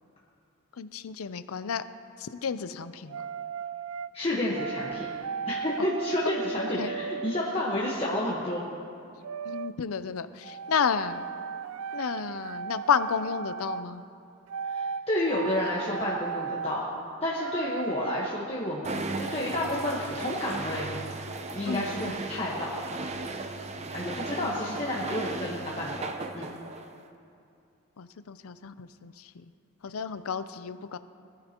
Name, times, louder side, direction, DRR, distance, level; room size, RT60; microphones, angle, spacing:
voice 1, 0.8-1.8 2.2-3.3 6.8-6.9 9.5-11.2 11.9-14.0 21.7-21.9 24.4-24.6 28.0-29.4 29.8-31.0, left 6 dB, 75° left, 12 dB, 0.5 m, -31 dB
sound 1, 3.1-4.1 4.5-7.6 9.2-9.7 10.4-13.9 14.5-15.0 15.3-16.8 17.4-18.3, right 6 dB, 80° right, 0.4 m, -36 dB
voice 2, 4.1-5.1 5.5-8.6 14.7-16.9 17.2-20.9 21.5-22.8 23.9-26.5, left 1 dB, 25° left, -6 dB, 1.2 m, -30 dB
sound 2, 18.8-27.1, right 3 dB, 30° right, 0.6 m, -36 dB
21.5 x 14.0 x 2.9 m, 2.5 s
head